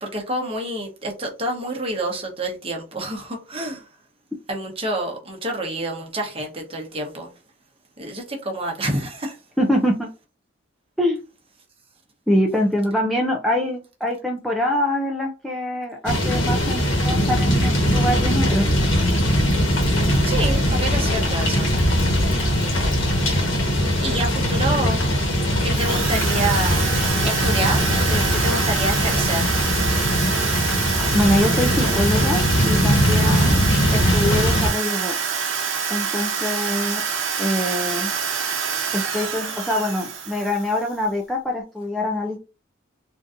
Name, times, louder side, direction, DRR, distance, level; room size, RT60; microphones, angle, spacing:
voice 1, 0.0-3.9 4.5-7.3 8.0-9.4 20.3-21.7 24.0-25.0 25.6-26.8 27.2-29.5 33.3-33.7, right 1 dB, 30° right, 0.9 m, -28 dB
voice 2, 9.6-10.1 11.0-11.2 12.3-18.7 31.1-35.2 35.9-37.0 37.4-38.1 38.9-42.4, left 1 dB, ahead, 0.4 m, -24 dB
sound 1, 16.0-34.7, equal, 65° left, 1.2 m, -20 dB
Drill, 25.7-40.9, right 6 dB, 65° right, 0.7 m, -26 dB
3.7 x 2.6 x 2.5 m
head